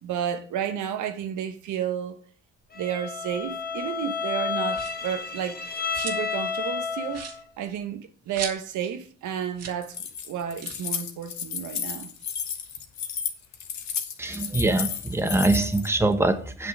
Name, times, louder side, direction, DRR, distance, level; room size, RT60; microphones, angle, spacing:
voice 1, 0.0-2.3 2.7-5.6 6.0-7.3 7.6-12.1, right 9 dB, 80° right, 1.1 m, -31 dB
Bowed string instrument, 2.7-7.4, left 5 dB, 30° left, 1.2 m, -31 dB
sound 1, 4.7-5.1 5.6-6.4 6.7-6.8 7.1-8.9 9.2-9.3 9.5-9.8 10.1-10.2 10.6-10.9 11.7-13.4 13.8-15.3, right 6 dB, 55° right, 1.9 m, -40 dB
Keys jangling, 9.8-15.9, left 7 dB, 65° left, 1.4 m, -33 dB
voice 2, 14.2-16.7, right 2 dB, 10° right, 1.1 m, -23 dB
8.1 x 6.2 x 6.1 m
cardioid pair, 90°, 30 cm